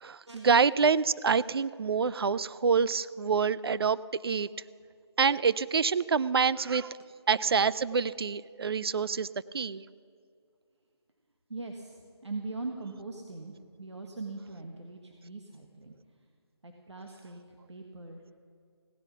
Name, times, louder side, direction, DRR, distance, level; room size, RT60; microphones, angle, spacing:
voice 1, 0.0-4.0 4.2-4.5 5.2-7.0 7.3-9.3 9.5-9.8, right 5 dB, 60° right, 17 dB, 0.4 m, -26 dB
voice 2, 11.5-15.9 16.6-17.4 17.7-18.3, right 3 dB, 80° right, 2 dB, 1.5 m, -41 dB
16.5 x 10.5 x 6.0 m, 2.2 s
figure-of-eight pair, 155°, 15 cm